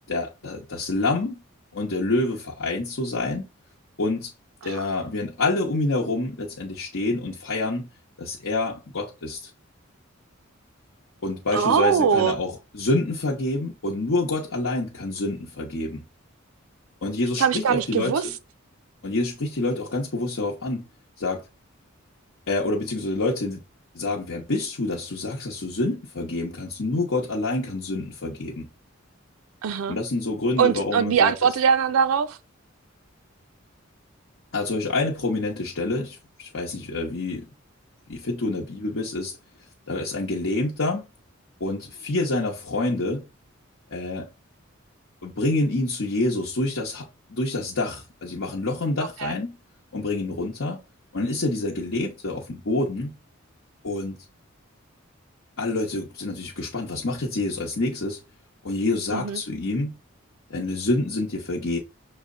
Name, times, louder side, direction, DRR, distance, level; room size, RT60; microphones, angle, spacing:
voice 1, 0.1-1.4 1.7-3.5 4.0-4.3 4.6-7.9 8.2-9.5 11.2-16.0 17.0-18.3 19.0-20.9 21.2-21.4 22.5-23.6 23.9-28.7 29.9-31.3 34.5-37.5 38.1-39.4 39.9-41.0 41.6-43.3 43.9-44.3 45.2-49.6 49.9-50.8 51.1-53.1 53.8-54.2 55.6-58.2 58.6-60.0 60.5-61.8, left 2 dB, 65° left, 0.9 m, -27 dB
voice 2, 11.5-12.3 17.4-18.2 29.6-30.0 30.6-32.4 49.2-49.3 59.1-59.4, right 7 dB, 85° right, 0.4 m, -21 dB
6.2 x 2.1 x 3.6 m
head